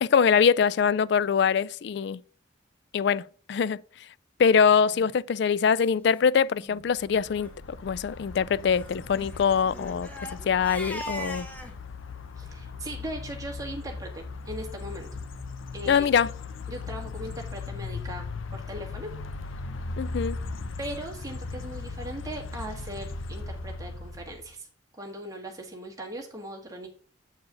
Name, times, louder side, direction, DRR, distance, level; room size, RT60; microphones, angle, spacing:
voice 1, 0.0-2.2 2.9-3.8 4.4-10.1 10.5-11.5 15.9-16.3 20.0-20.4, left 6 dB, 55° left, 0.3 m, -23 dB
Crying sobbing, 4.9-5.1 5.8-5.9 6.1-6.3 6.6-6.8 7.3-7.5 8.7-11.7, equal, 10° left, 0.9 m, -40 dB
sound 1, 6.9-24.5, left 3 dB, 85° left, 0.7 m, -38 dB
voice 2, 12.4-15.1 15.7-16.1 16.7-18.2 18.5-19.1 19.5-19.6 20.8-24.7 24.9-26.9, right 1 dB, 15° right, 1.7 m, -39 dB
8.0 x 4.6 x 5.2 m
head